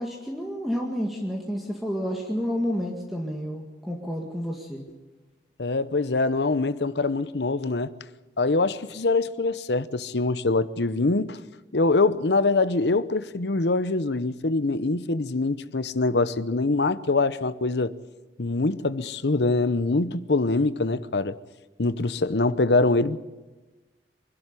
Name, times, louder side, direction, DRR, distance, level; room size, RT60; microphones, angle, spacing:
voice 1, 0.0-4.8, equal, ahead, 2.0 m, -30 dB
voice 2, 5.6-7.9 8.4-11.4 11.7-17.9 18.4-21.4 21.8-23.2, left 3 dB, 70° left, 0.9 m, -24 dB
24.5 x 12.0 x 9.8 m
head